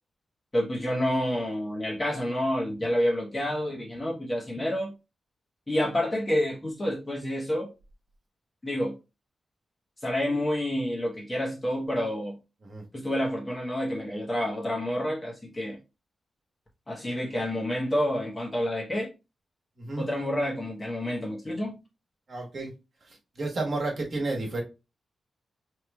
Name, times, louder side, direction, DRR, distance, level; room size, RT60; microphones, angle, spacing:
voice 1, 0.5-4.9 5.7-7.7 8.6-9.0 10.0-12.4 12.9-15.8 16.9-19.1 20.0-21.8, left 1 dB, 20° left, 1.0 m, -28 dB
voice 2, 22.3-22.7 23.4-24.6, right 2 dB, 45° right, 1.3 m, -31 dB
5.5 x 3.1 x 2.2 m
wide cardioid pair, 140°, 0 cm